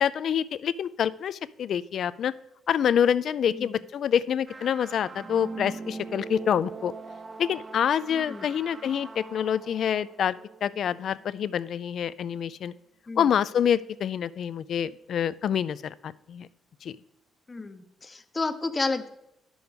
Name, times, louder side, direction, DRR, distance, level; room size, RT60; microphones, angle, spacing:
voice 1, 0.0-2.3 2.7-6.9 7.4-10.4 10.6-12.7 13.2-16.5 16.8-16.9, left 8 dB, 65° left, 17 dB, 0.4 m, -26 dB
sound 1, 4.5-11.3, right 4 dB, 30° right, 0.6 m, -42 dB
voice 2, 8.1-8.5 13.1-13.3 17.5-19.1, left 3 dB, 25° left, 10 dB, 0.8 m, -32 dB
9.5 x 6.2 x 5.1 m, 0.83 s
cardioid pair, 90°, 0 cm